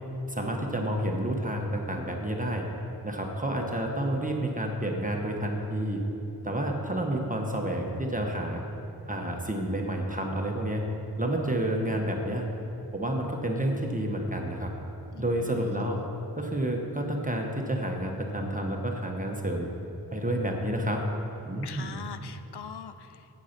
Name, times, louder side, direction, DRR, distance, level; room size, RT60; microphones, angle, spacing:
voice 1, 0.3-2.6 3.0-6.0 6.4-8.6 9.1-10.8 11.2-12.4 12.9-14.7 15.2-16.0 16.4-19.7 20.1-21.0 21.5-22.0, right 1 dB, 20° right, 1 dB, 1.1 m, -30 dB
voice 2, 15.1-16.1 21.6-23.3, left 6 dB, 80° left, 10 dB, 0.6 m, -42 dB
8.4 x 8.1 x 5.9 m, 3.0 s
wide cardioid pair, 65°, 39 cm